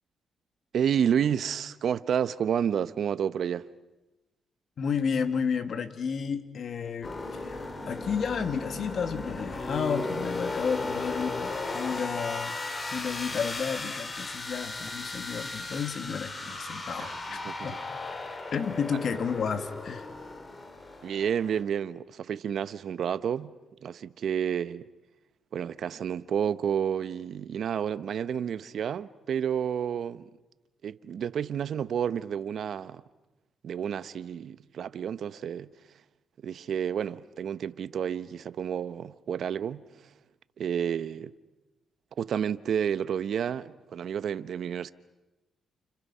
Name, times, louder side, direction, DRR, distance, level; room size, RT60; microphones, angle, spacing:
voice 1, 0.7-3.7 17.0-17.6 21.0-23.5 23.8-24.9 25.5-30.3 30.8-33.0 33.6-35.7 36.4-39.8 40.6-41.3 42.2-44.9, right 8 dB, 70° right, 0.9 m, -30 dB
voice 2, 4.8-7.6 7.9-12.6 12.9-17.8 18.5-20.1, left 6 dB, 60° left, 2.2 m, -32 dB
sound 1, 7.0-21.6, left 2 dB, 35° left, 3.7 m, -36 dB
30.0 x 29.5 x 5.7 m
cardioid pair, 75°, 0 cm